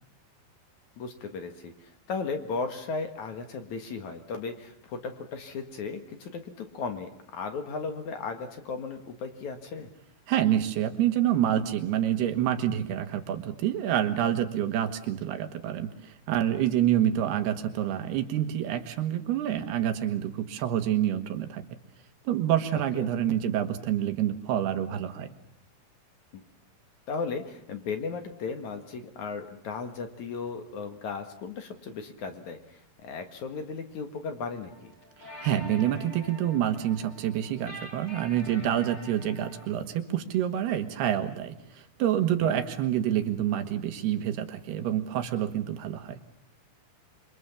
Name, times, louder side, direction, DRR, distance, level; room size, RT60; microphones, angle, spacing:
voice 1, 1.0-9.9 22.7-23.1 26.3-26.4 27.1-34.9 42.4-42.5, left 4 dB, 55° left, 7 dB, 2.6 m, -36 dB
voice 2, 10.3-21.6 22.3-25.3 35.4-46.2, right 11 dB, 85° right, 7 dB, 3.6 m, -27 dB
sound 1, 34.7-39.7, left 1 dB, 25° left, 5.0 m, -45 dB
27.0 x 23.5 x 7.2 m, 0.75 s
omnidirectional pair, 4.6 m